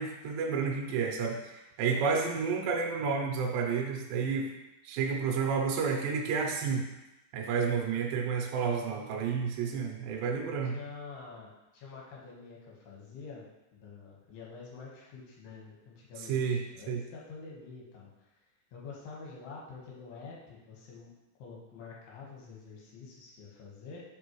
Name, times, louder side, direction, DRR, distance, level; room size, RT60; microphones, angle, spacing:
voice 1, 0.0-4.5 4.8-6.9 7.3-10.8 16.3-16.6 16.9-17.0, right 5 dB, 80° right, 1 dB, 2.0 m, -30 dB
voice 2, 10.6-13.4 13.7-18.1 18.7-21.1 21.4-24.0, left 4 dB, 75° left, -4 dB, 3.3 m, -47 dB
5.9 x 5.3 x 3.1 m, 0.97 s
omnidirectional pair, 4.9 m